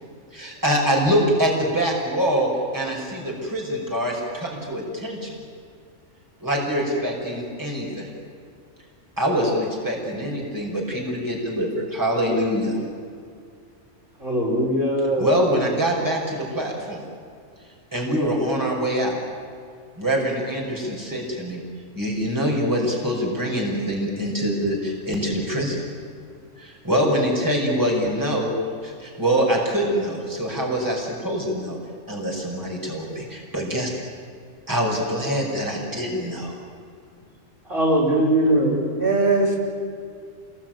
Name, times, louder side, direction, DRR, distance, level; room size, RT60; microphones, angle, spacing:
voice 1, 0.3-5.4 6.4-8.1 9.2-12.8 15.2-17.0 17.9-19.2 20.0-21.6 21.9-25.8 26.6-28.5 28.8-31.8 32.1-33.9 34.7-36.5, equal, 15° right, -2 dB, 5.5 m, -24 dB
voice 2, 14.2-15.3 37.7-38.8, right 1 dB, 70° right, -3 dB, 6.0 m, -20 dB
voice 3, 38.5-39.6, right 3 dB, 45° right, -3 dB, 7.2 m, -22 dB
28.0 x 21.0 x 9.3 m, 2.2 s
omnidirectional pair, 1.3 m